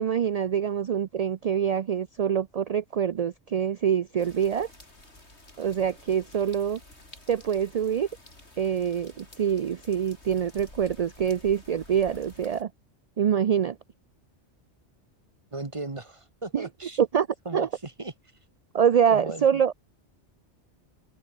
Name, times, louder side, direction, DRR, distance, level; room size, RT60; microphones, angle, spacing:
voice 1, 0.0-4.7 5.6-6.8 7.3-8.1 8.6-12.7 13.2-13.8 16.5-16.7 17.0-17.3 17.5-17.7 18.7-19.7, right 8 dB, 65° right, 0.4 m, -25 dB
sound 1, 4.2-12.6, left 2 dB, 70° left, 6.4 m, -51 dB
voice 2, 15.5-17.0 17.4-18.1 19.1-19.6, right 2 dB, 25° right, 1.6 m, -36 dB
open air
omnidirectional pair, 1.2 m